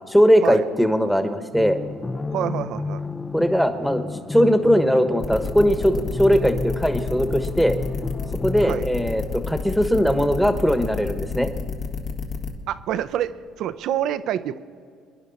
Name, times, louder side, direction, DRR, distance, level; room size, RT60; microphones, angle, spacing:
voice 1, 0.1-1.8 3.3-4.0 4.3-7.8 8.4-11.5, equal, 5° left, 8 dB, 1.4 m, -19 dB
sound 1, 1.5-9.7, left 3 dB, 25° left, 0.7 m, -32 dB
voice 2, 2.3-3.0 8.6-8.9 12.7-14.6, right 11 dB, 65° right, 12 dB, 0.6 m, -27 dB
sound 2, 5.2-12.5, left 5 dB, 55° left, 1.9 m, -30 dB
26.0 x 11.0 x 4.2 m, 2.2 s
hypercardioid pair, 60°, 0 cm